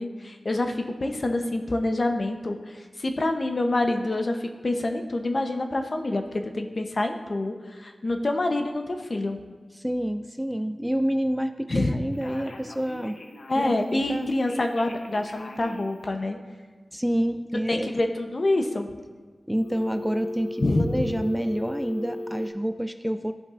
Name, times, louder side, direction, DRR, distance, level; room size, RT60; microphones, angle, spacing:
voice 1, 0.0-9.4 11.7-11.9 13.5-16.4 17.7-18.9 20.6-21.1, left 2 dB, 50° left, 5 dB, 0.8 m, -26 dB
voice 2, 9.8-13.2 13.5-14.3 16.9-17.9 19.5-23.3, equal, 5° right, 9 dB, 0.3 m, -28 dB
Telephone, 12.1-13.8 14.4-16.1 19.6-22.5, left 2 dB, 80° left, 0.8 m, -37 dB
13.5 x 5.2 x 2.5 m, 1.4 s
cardioid pair, 50°, 0 cm